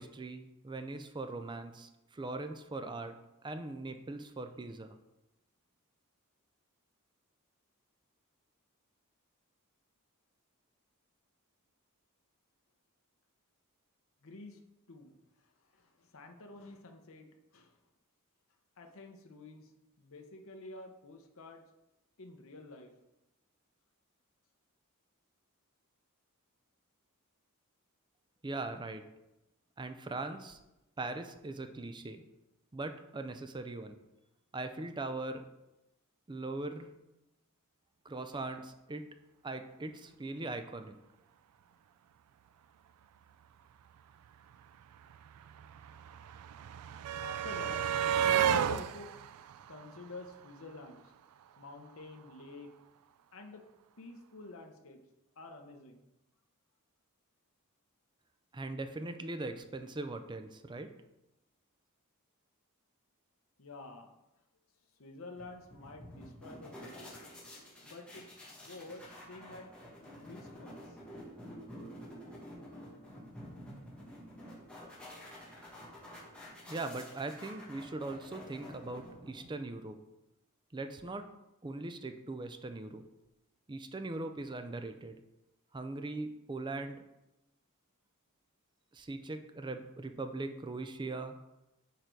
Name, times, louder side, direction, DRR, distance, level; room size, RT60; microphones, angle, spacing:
voice 1, 0.0-3.2 3.4-5.0 28.4-29.0 29.8-30.6 31.0-32.2 32.7-34.0 34.5-35.4 36.3-36.9 38.0-39.0 39.4-41.0 58.5-60.9 76.7-80.0 80.7-81.2 81.6-83.0 83.7-85.2 85.7-87.0 88.9-91.3, right 2 dB, 20° right, 8 dB, 0.4 m, -40 dB
voice 2, 14.2-14.6 14.9-15.1 15.4-17.3 17.5-17.8 18.8-19.7 20.0-21.6 22.2-22.9 46.7-46.8 47.2-47.9 48.2-49.1 49.7-51.1 51.6-52.7 53.3-53.6 54.0-55.0 55.4-56.1 63.6-64.1 65.0-67.2 67.8-69.7 70.0-71.0, left 2 dB, 65° left, 4 dB, 0.8 m, -49 dB
sound 1, 44.2-44.3 44.5-50.7 51.9-52.0 52.3-52.4, right 9 dB, 90° right, 0.3 m, -33 dB
sound 2, 65.4-79.7, equal, 5° left, 1.4 m, -50 dB
6.6 x 3.9 x 4.5 m, 0.93 s
head